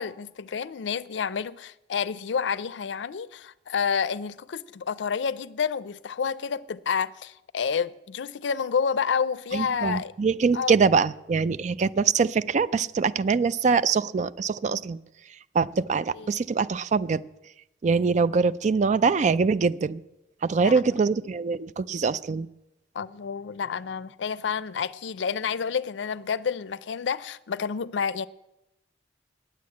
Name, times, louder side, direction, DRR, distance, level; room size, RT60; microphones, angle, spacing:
voice 1, 0.0-10.1 10.5-10.8 16.1-16.3 20.6-20.8 22.9-28.3, left 6 dB, 80° left, 0.4 m, -29 dB
voice 2, 9.5-15.0 15.5-17.2 17.8-20.0 20.4-22.5, right 5 dB, 40° right, 0.4 m, -23 dB
9.6 x 9.3 x 8.4 m
head